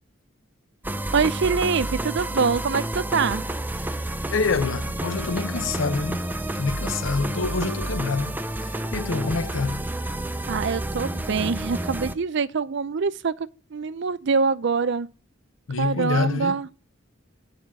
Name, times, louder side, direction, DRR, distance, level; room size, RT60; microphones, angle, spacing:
sound 1, 0.8-12.2, right 1 dB, 10° right, 0.5 m, -30 dB
voice 1, 1.1-3.4 10.5-15.1 15.8-16.7, right 5 dB, 65° right, 0.5 m, -24 dB
voice 2, 4.3-6.3 6.5-9.8 15.7-16.6, left 4 dB, 75° left, 0.7 m, -26 dB
9.4 x 5.1 x 6.0 m
head